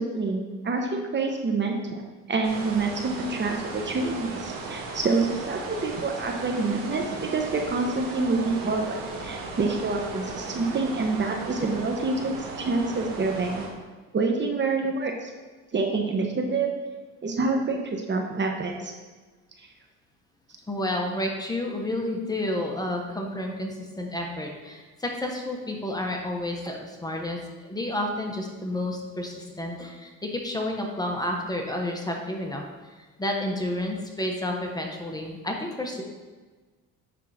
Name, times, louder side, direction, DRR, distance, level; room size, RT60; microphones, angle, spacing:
voice 1, 0.0-2.0 2.3-9.0 9.2-13.6 14.1-15.3 15.7-16.7 17.2-18.9, right 3 dB, 35° right, 2 dB, 1.0 m, -27 dB
sound 1, 2.4-13.7, right 3 dB, 80° right, 1.7 m, -36 dB
voice 2, 20.7-32.6 33.2-36.0, left 1 dB, 10° left, 1 dB, 1.2 m, -30 dB
9.7 x 3.8 x 5.0 m, 1.3 s
cardioid pair, 105°, 32 cm